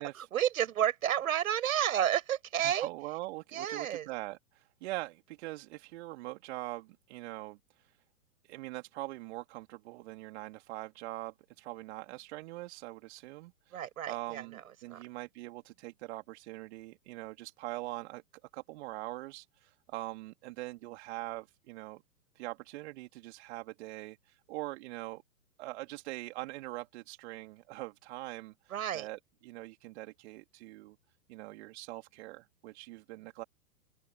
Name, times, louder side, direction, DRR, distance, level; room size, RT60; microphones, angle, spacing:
voice 1, 0.3-2.9 3.5-4.1 13.7-14.6 14.9-15.0 28.7-29.1, right 10 dB, 60° right, 5.8 m, -31 dB
voice 2, 2.6-7.9 8.4-13.8 14.1-18.2 18.5-22.0 22.3-25.2 25.6-31.0 31.3-33.4, right 19 dB, 45° right, 2.9 m, -43 dB
figure-of-eight pair, 110°, 46 cm